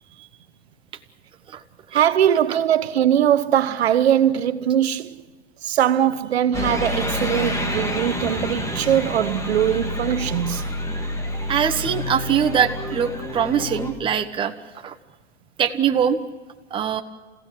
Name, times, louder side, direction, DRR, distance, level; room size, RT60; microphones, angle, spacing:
voice 1, 1.9-5.2 5.6-10.6, right 10 dB, 75° right, 1.2 m, -21 dB
sound 1, 6.5-13.9, left 1 dB, 10° left, 2.2 m, -28 dB
voice 2, 11.5-14.5 14.8-14.9 15.6-16.2 16.7-17.0, right 8 dB, 15° right, 1.2 m, -22 dB
29.0 x 16.0 x 7.6 m
hypercardioid pair, 135°, 32 cm